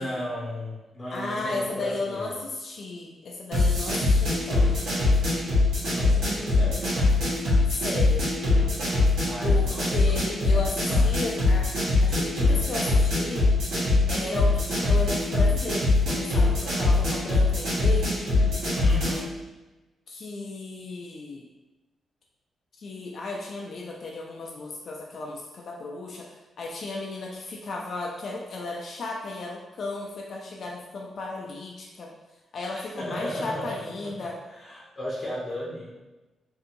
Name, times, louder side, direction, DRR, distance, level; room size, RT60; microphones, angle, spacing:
voice 1, 0.0-2.4 5.9-6.9 9.3-10.3 10.9-11.2 18.8-19.4 32.7-36.0, equal, 30° left, -7 dB, 0.7 m, -36 dB
voice 2, 1.1-4.7 7.8-8.3 9.4-11.7 12.0-13.5 14.1-18.4 20.1-21.4 22.8-26.3 26.6-32.1 32.5-34.4, left 2 dB, 60° left, -2 dB, 0.4 m, -34 dB
sound 1, 3.5-19.3, left 2 dB, 90° right, 1.1 m, -23 dB
2.7 x 2.6 x 2.5 m, 1.1 s
cardioid pair, 80°, 0 cm